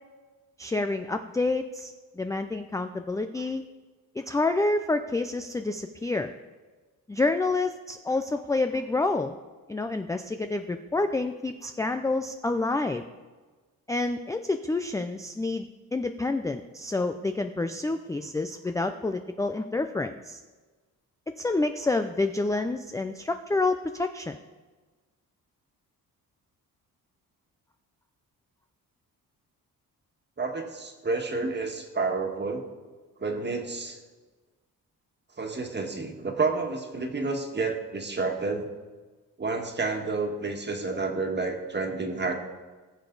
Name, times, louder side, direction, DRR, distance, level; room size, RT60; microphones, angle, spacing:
voice 1, 0.6-3.6 4.2-6.3 7.1-9.4 9.7-13.0 13.9-20.4 21.4-24.4, left 2 dB, 10° left, 7 dB, 0.4 m, -28 dB
voice 2, 30.4-32.6 33.2-34.0 35.4-38.7 39.4-42.3, right 3 dB, 30° right, 3 dB, 1.7 m, -30 dB
18.0 x 6.9 x 4.0 m, 1.3 s
cardioid pair, 105°, 36 cm